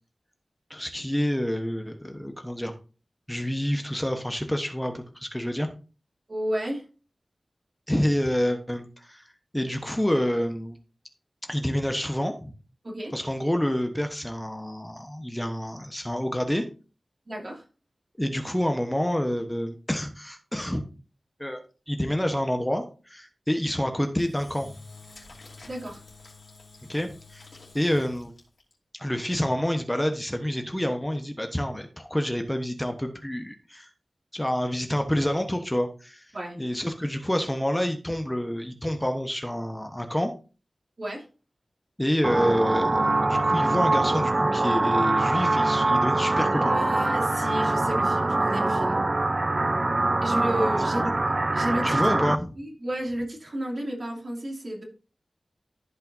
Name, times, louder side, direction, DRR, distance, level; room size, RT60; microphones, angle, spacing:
voice 1, 0.7-2.7 3.3-5.7 7.9-9.3 9.5-10.8 11.5-12.5 13.1-16.6 18.2-20.8 21.4-24.7 26.9-27.5 27.7-28.3 28.9-33.9 34.3-36.3 36.6-40.3 42.0-46.7 51.0-51.1 51.8-52.5, equal, 10° left, 5 dB, 1.1 m, -28 dB
voice 2, 6.3-6.8 12.8-13.1 17.3-17.6 25.7-26.0 36.3-36.6 41.0-41.3 46.5-49.0 50.2-51.1 51.5-52.3 52.6-54.8, equal, 50° right, 0 dB, 2.6 m, -32 dB
Engine / Drill, 24.2-28.7, left 3 dB, 70° left, 3.4 m, -48 dB
sound 1, 42.2-52.4, right 2 dB, 35° right, 0.4 m, -23 dB
14.5 x 5.5 x 2.7 m, 0.34 s
wide cardioid pair, 85°, 0 cm